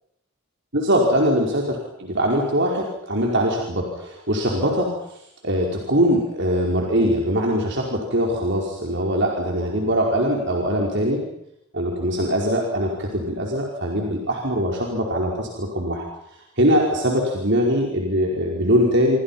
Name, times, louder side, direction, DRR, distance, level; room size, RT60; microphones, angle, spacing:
voice 1, 0.7-5.2 5.4-11.2 11.7-16.0 16.6-19.2, equal, 60° right, 0 dB, 5.0 m, -22 dB
28.5 x 25.5 x 5.8 m, 0.78 s
head